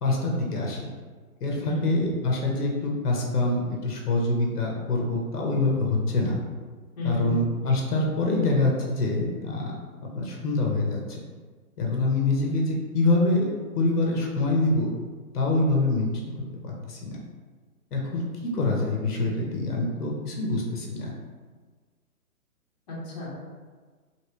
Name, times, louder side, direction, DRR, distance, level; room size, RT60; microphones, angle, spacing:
voice 1, 0.0-0.9 1.4-6.4 7.0-9.7 10.0-11.2 11.8-13.4 13.7-14.9 15.3-16.3 16.6-17.1 17.9-18.2 18.5-21.1, left 2 dB, 80° left, -1 dB, 1.0 m, -25 dB
voice 2, 7.0-7.4 22.9-23.3, left 2 dB, 30° left, -7 dB, 0.8 m, -32 dB
2.9 x 2.9 x 3.0 m, 1.5 s
hypercardioid pair, 160°, 46 cm